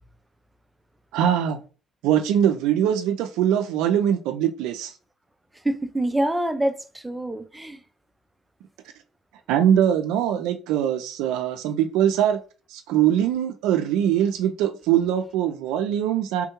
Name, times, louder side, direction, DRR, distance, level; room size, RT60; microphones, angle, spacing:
voice 1, 1.1-1.6 2.0-4.9 9.5-12.4 12.7-16.5, right 10 dB, 80° right, 0.4 m, -22 dB
voice 2, 5.6-7.8, right 1 dB, 10° right, 0.4 m, -26 dB
3.6 x 2.2 x 2.9 m
supercardioid pair, 90°, 0 cm